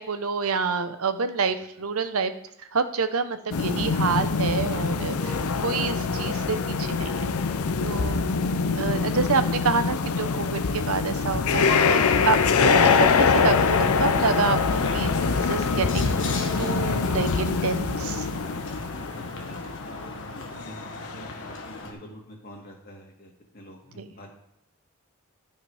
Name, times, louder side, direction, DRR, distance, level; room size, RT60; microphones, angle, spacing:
voice 1, 0.0-2.3 2.6-5.3 5.6-7.2 7.8-8.3 8.8-16.1 16.6-18.3 24.0-24.1, right 5 dB, 70° right, 10 dB, 0.7 m, -28 dB
sound 1, 3.5-20.1 20.6-20.7 21.2-21.3, left 5 dB, 75° left, 0.6 m, -24 dB
Piano, 5.2-19.1, left 2 dB, 15° left, 0.6 m, -42 dB
sound 2, 11.5-21.9, left 2 dB, 60° left, 1.4 m, -34 dB
voice 2, 18.7-24.3, equal, 45° left, 0 dB, 2.3 m, -47 dB
11.5 x 5.7 x 4.9 m, 0.77 s
head